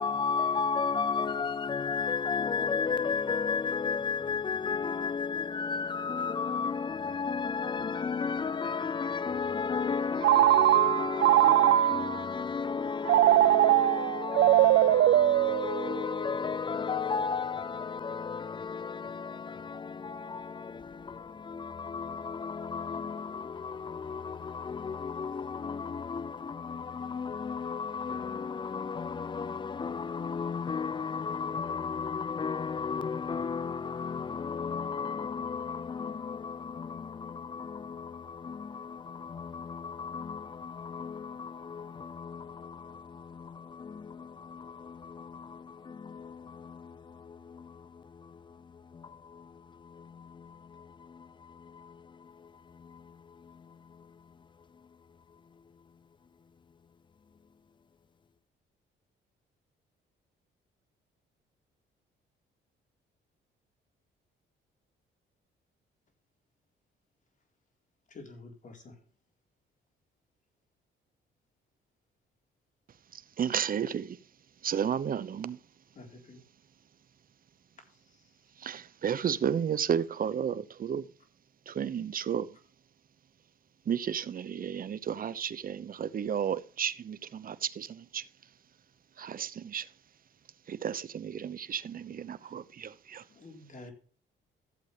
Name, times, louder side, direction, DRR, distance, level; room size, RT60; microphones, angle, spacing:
voice 1, 0.0-47.7 48.9-49.4 50.0-50.8 51.7-51.9, left 5 dB, 25° left, 0.4 m, -34 dB
Telephone, 10.2-12.2 13.1-16.1, right 14 dB, 70° right, 0.6 m, -22 dB
voice 2, 68.1-69.0 76.0-76.4 77.9-78.2 92.4-92.5 93.3-93.9, left 2 dB, 40° left, 4.0 m, -49 dB
voice 3, 73.1-74.2 74.6-75.6 78.6-81.1 81.7-82.6 83.8-88.3 89.2-89.9 90.7-93.3, right 8 dB, 45° right, 0.9 m, -33 dB
14.5 x 8.0 x 3.3 m
cardioid pair, 90°, 20 cm